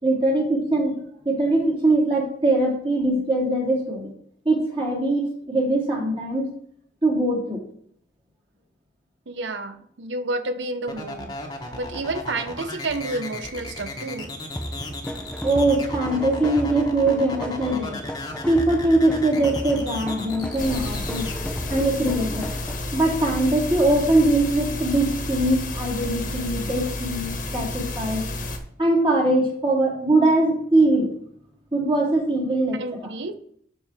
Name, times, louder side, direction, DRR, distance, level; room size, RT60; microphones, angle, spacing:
voice 1, 0.0-4.1 4.4-6.5 7.0-7.6 15.4-18.0 18.5-21.3 21.7-22.5 22.9-28.3 28.8-31.1 31.7-32.8, right 2 dB, 30° right, -5 dB, 2.6 m, -22 dB
voice 2, 9.3-11.3 11.7-14.3 26.2-26.3 32.8-33.3, right 2 dB, 80° right, 10 dB, 0.8 m, -30 dB
sound 1, 10.9-21.3, left 2 dB, 20° left, 1.2 m, -35 dB
sound 2, 14.6-23.0, equal, 5° left, 0.5 m, -34 dB
sound 3, 20.6-28.6, left 2 dB, 45° left, 1.3 m, -31 dB
12.5 x 4.7 x 3.5 m, 0.65 s
head